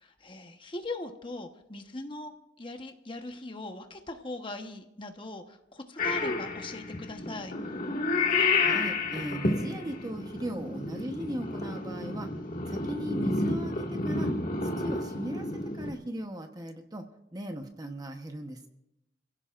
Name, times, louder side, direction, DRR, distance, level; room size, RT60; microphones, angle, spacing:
voice 1, 0.0-7.6, left 2 dB, 30° left, 5 dB, 1.1 m, -40 dB
Purr / Meow, 6.0-15.9, left 3 dB, 50° left, 2.0 m, -30 dB
voice 2, 8.6-12.3 12.7-14.3 14.8-17.1 17.3-18.7, right 1 dB, 20° right, 5 dB, 1.0 m, -38 dB
30.0 x 16.0 x 2.5 m, 0.87 s
head